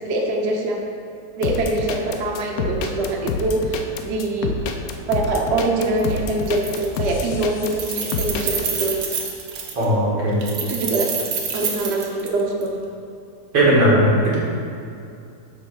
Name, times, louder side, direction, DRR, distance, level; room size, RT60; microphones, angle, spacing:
voice 1, 0.1-0.8 1.4-4.5 5.1-9.0 10.7-11.1 11.5-12.8, right 2 dB, 50° right, -1 dB, 0.9 m, -24 dB
sound 1, 1.4-8.7, left 4 dB, 70° left, 0.9 m, -27 dB
Keys jangling, 6.0-6.1 6.4-7.2 7.4-9.8 10.4-12.7, right 6 dB, 70° right, 1.4 m, -28 dB
voice 2, 9.8-10.4 13.5-14.4, right 1 dB, 90° right, -7 dB, 2.6 m, -17 dB
8.5 x 3.2 x 6.2 m, 2.5 s
omnidirectional pair, 2.0 m